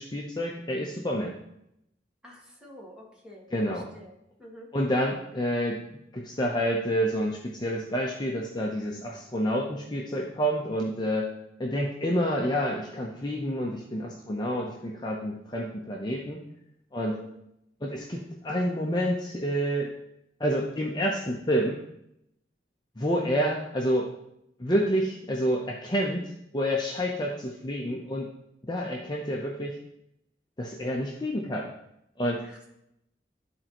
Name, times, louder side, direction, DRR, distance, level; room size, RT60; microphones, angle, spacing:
voice 1, 0.0-1.4 3.5-3.8 4.7-5.8 6.1-11.3 11.6-16.4 16.9-17.2 17.8-19.9 20.4-21.8 23.0-24.1 24.6-26.2 26.5-28.3 28.7-29.8 30.6-31.7 32.2-32.4, equal, 25° left, -1 dB, 0.7 m, -28 dB
voice 2, 2.2-4.7 17.0-17.3 32.4-32.7, equal, 5° right, -4 dB, 1.7 m, -49 dB
12.5 x 4.4 x 3.0 m, 0.80 s
head